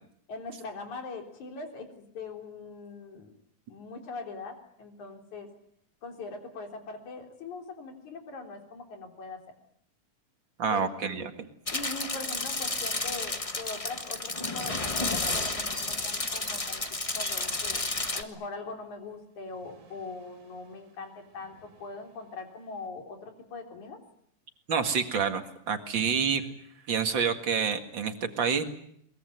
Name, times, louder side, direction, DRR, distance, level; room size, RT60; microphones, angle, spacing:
voice 1, 0.3-3.3 3.7-5.5 6.0-9.6 10.7-11.3 11.7-16.8 17.2-17.8 18.1-24.0, left 3 dB, 75° left, 4 dB, 5.0 m, -41 dB
voice 2, 10.6-11.5 24.7-26.5 26.9-28.6, right 6 dB, 45° right, 7 dB, 2.3 m, -28 dB
sound 1, 11.7-18.2, left 2 dB, 55° left, 0.3 m, -31 dB
sound 2, 13.6-17.4 19.1-22.9, right 3 dB, 80° right, 3.9 m, -52 dB
22.5 x 21.5 x 9.4 m, 0.71 s
omnidirectional pair, 3.4 m